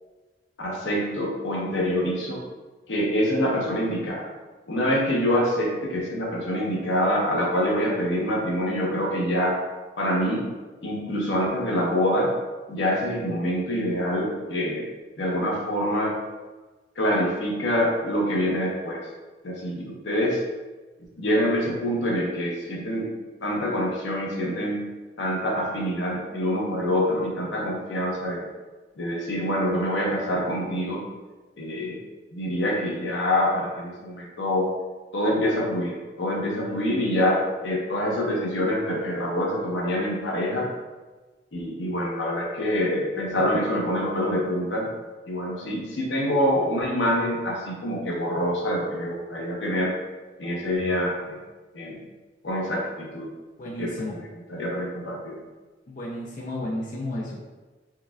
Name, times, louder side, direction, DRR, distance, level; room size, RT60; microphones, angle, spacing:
voice 1, 0.6-2.4 2.9-4.3 4.7-9.6 10.0-10.5 10.8-12.3 12.7-14.8 15.2-16.2 17.0-19.0 19.4-20.4 21.2-23.1 23.4-24.8 25.2-28.5 29.0-31.1 31.6-32.0 32.3-34.7 35.1-40.7 41.5-44.9 45.3-49.9 50.4-51.4 51.7-52.0 52.4-53.3 53.8-55.4, equal, 90° left, -3 dB, 0.8 m, -26 dB
voice 2, 53.6-54.1 55.9-57.4, left 1 dB, 45° left, -4 dB, 0.4 m, -32 dB
4.6 x 2.3 x 2.3 m, 1.3 s
head